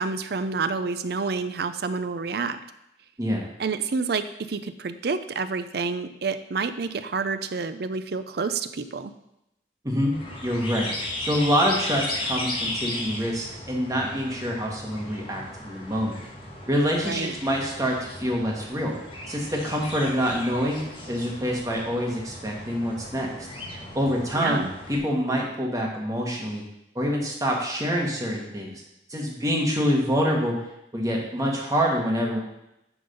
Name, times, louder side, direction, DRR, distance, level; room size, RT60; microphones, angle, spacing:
voice 1, 0.0-2.6 3.6-9.1 17.0-17.3 24.3-24.7, right 4 dB, 60° right, 11 dB, 0.5 m, -28 dB
voice 2, 9.8-10.1 10.4-10.9 11.2-16.1 16.7-18.9 19.3-20.8 21.1-23.5 23.9-24.6 24.9-26.6 26.9-28.8 29.1-30.5 30.9-32.4, equal, 20° right, -1 dB, 1.6 m, -26 dB
sound 1, 10.1-25.0, left 1 dB, 30° left, 1.4 m, -36 dB
10.0 x 3.9 x 5.3 m, 0.85 s
head